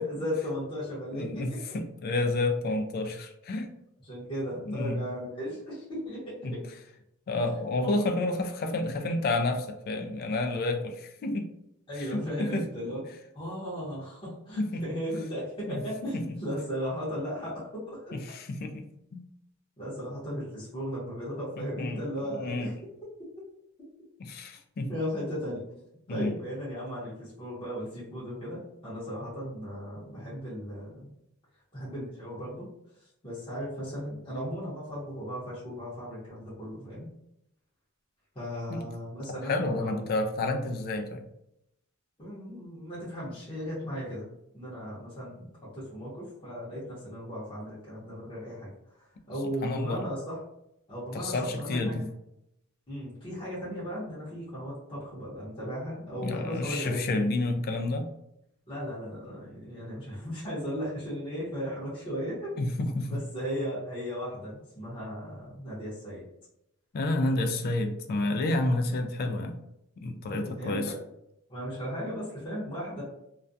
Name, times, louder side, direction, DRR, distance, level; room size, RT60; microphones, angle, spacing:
voice 1, 0.0-1.8 4.0-6.7 7.8-8.0 11.9-13.0 13.3-18.2 19.8-22.7 24.9-25.6 26.1-31.1 31.7-32.7 33.0-37.1 38.3-40.1 42.2-44.3 44.5-50.4 50.9-52.1 52.9-57.0 58.7-62.6 63.1-66.2 70.3-71.0 71.5-73.0, equal, 25° left, -9 dB, 0.8 m, -36 dB
voice 2, 1.1-3.7 4.7-5.0 6.4-6.5 7.3-11.5 12.0-12.6 14.6-14.9 15.7-15.8 16.1-16.2 18.1-19.2 21.6-22.0 22.4-22.7 24.2-24.9 26.1-26.4 38.7-38.8 39.4-41.2 49.6-50.1 51.1-52.1 56.2-58.1 62.6-63.1 66.9-69.6 70.0-70.9, left 2 dB, 45° left, 6 dB, 0.3 m, -30 dB
2.3 x 2.1 x 2.5 m, 0.82 s
head